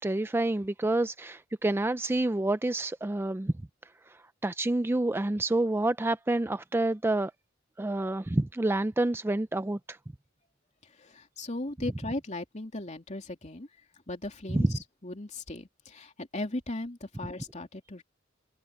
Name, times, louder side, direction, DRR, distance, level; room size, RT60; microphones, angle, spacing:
voice 1, 0.0-3.5 4.1-7.3 7.8-10.0 14.5-14.7, right 2 dB, 10° right, 0.4 m, -28 dB
voice 2, 10.8-13.7 14.1-14.7 15.0-18.0, left 2 dB, 40° left, 3.0 m, -37 dB
head